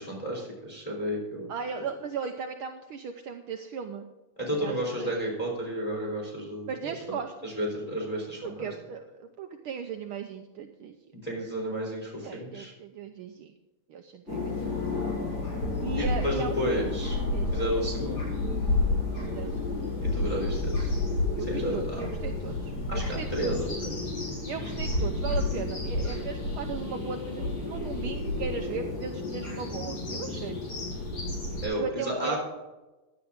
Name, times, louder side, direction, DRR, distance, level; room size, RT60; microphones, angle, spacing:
voice 1, 0.0-1.5 4.4-6.9 7.4-8.7 11.1-12.7 15.9-17.2 17.5-18.3 20.0-21.0 21.5-22.0 22.9-24.0 31.6-32.4, equal, 10° left, -2 dB, 3.5 m, -32 dB
voice 2, 1.5-4.1 4.5-5.1 6.7-7.3 8.4-10.9 12.2-13.5 13.9-14.5 15.8-16.8 17.3-17.5 19.3-19.9 21.3-23.5 24.5-30.6 31.8-32.4, right 6 dB, 75° right, 5 dB, 1.2 m, -37 dB
sound 1, 14.3-31.7, left 2 dB, 40° left, 5.6 m, -31 dB
15.5 x 11.0 x 3.7 m, 1.1 s
omnidirectional pair, 3.3 m